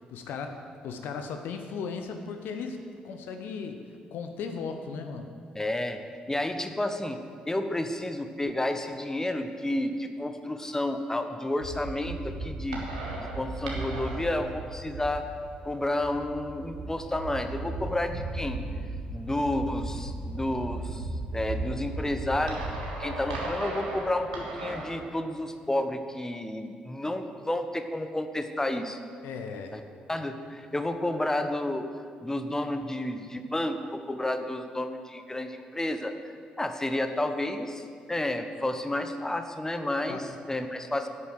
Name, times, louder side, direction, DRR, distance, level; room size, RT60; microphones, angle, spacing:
voice 1, 0.1-3.8 4.1-5.3 29.2-29.8 40.1-40.3, left 5 dB, 60° left, 6 dB, 0.9 m, -36 dB
voice 2, 5.5-6.0 6.3-7.2 7.5-12.8 13.2-15.3 15.6-18.6 19.1-21.1 21.3-22.7 23.0-29.0 29.7-29.8 30.1-31.9 32.2-36.1 36.6-37.8 38.1-41.1, left 1 dB, 15° left, 7 dB, 1.1 m, -31 dB
sound 1, 11.6-25.0, right 2 dB, 80° right, 1.5 m, -36 dB
11.5 x 8.4 x 7.5 m, 2.2 s
figure-of-eight pair, 45°, 4 cm